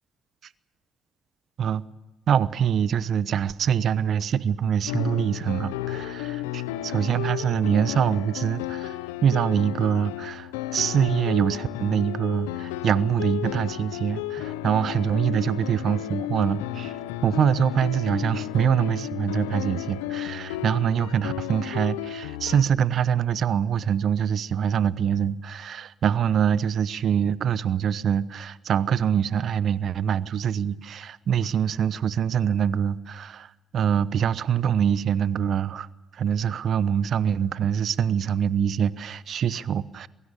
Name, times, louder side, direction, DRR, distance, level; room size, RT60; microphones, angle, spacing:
voice 1, 2.3-16.9 17.2-35.9 36.1-40.1, right 8 dB, 60° right, 1.0 m, -24 dB
sound 1, 4.9-22.6, left 13 dB, 90° left, 0.8 m, -33 dB
23.0 x 22.5 x 6.8 m
hypercardioid pair, 50°, 0 cm